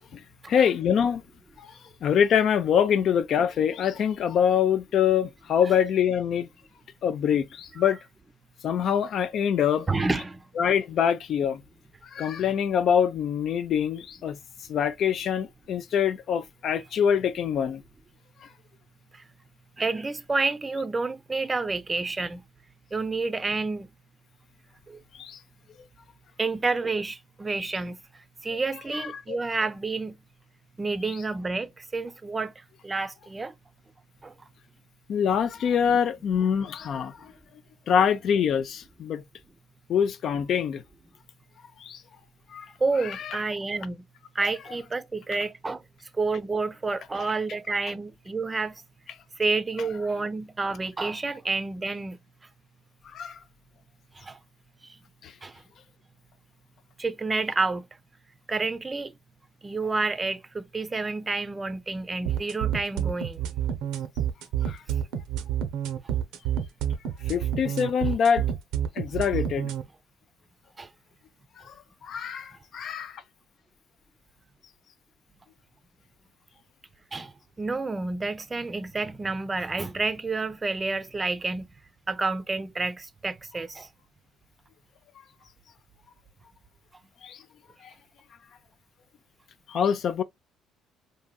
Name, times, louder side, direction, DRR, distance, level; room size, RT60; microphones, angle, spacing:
voice 1, 0.1-1.2 1.6-6.5 7.0-8.0 8.6-9.9 10.6-11.6 12.1-14.4 14.7-17.8 18.4-18.5 25.1-25.4 28.9-29.4 31.1-31.2 35.1-37.3 37.9-39.2 39.9-40.8 41.8-42.0 42.5-42.7 43.0-43.4 53.0-53.4 55.2-55.3 64.7-64.8 67.3-68.4 69.0-69.7 71.7-71.8 72.0-73.2 87.2-87.4 87.8-87.9 89.7-90.2, left 8 dB, 60° left, 0.4 m, -25 dB
voice 2, 9.9-10.4 19.1-19.2 19.8-22.4 22.9-23.9 24.9-25.0 26.4-28.0 28.4-30.2 30.8-32.5 32.8-33.5 34.2-34.3 42.8-44.0 44.3-45.8 46.1-48.8 49.4-52.2 54.2-54.4 54.8-55.0 55.4-55.5 57.0-57.9 58.5-59.1 59.6-63.4 70.8-70.9 77.1-77.3 77.6-81.7 82.1-83.9, right 3 dB, 20° right, 0.5 m, -29 dB
sound 1, 62.3-69.8, right 10 dB, 80° right, 0.5 m, -28 dB
3.8 x 2.6 x 2.2 m
supercardioid pair, 85°, 0 cm